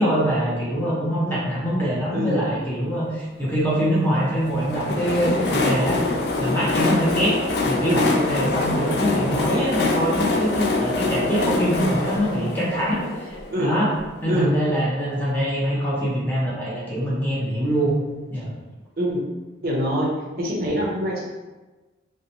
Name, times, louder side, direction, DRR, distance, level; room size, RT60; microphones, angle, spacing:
voice 1, 0.0-6.0 6.4-13.9 14.2-17.9 18.3-18.5, equal, 10° left, -7 dB, 0.5 m, -24 dB
Train, 4.4-14.1, left 2 dB, 60° left, 0.3 m, -24 dB
voice 2, 19.6-20.1 20.4-21.2, equal, 50° right, -3 dB, 0.5 m, -24 dB
2.8 x 2.1 x 2.7 m, 1.2 s
head